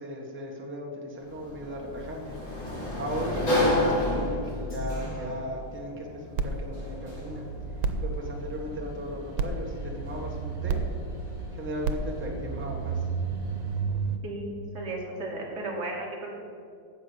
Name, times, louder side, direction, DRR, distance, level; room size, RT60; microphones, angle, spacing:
voice 1, 0.0-2.4 3.0-7.4 8.0-10.8 11.5-13.1, equal, 5° right, 0 dB, 1.2 m, -37 dB
Sliding door, 1.2-13.8, left 1 dB, 40° left, 2.9 m, -33 dB
sound 1, 6.4-14.2, right 5 dB, 90° right, 1.6 m, -32 dB
voice 2, 14.2-16.3, right 2 dB, 35° right, -2 dB, 2.3 m, -35 dB
10.0 x 6.8 x 8.5 m, 2.4 s
omnidirectional pair, 2.2 m